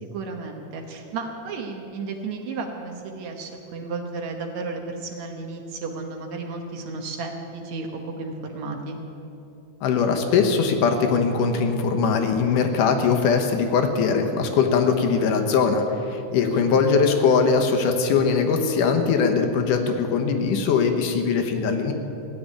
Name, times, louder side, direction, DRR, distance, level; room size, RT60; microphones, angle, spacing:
voice 1, 0.0-9.0 16.5-16.8, right 3 dB, 65° right, 3 dB, 2.2 m, -33 dB
voice 2, 9.8-21.9, left 5 dB, 75° left, 5 dB, 2.6 m, -21 dB
16.0 x 7.7 x 10.0 m, 2.9 s
omnidirectional pair, 3.9 m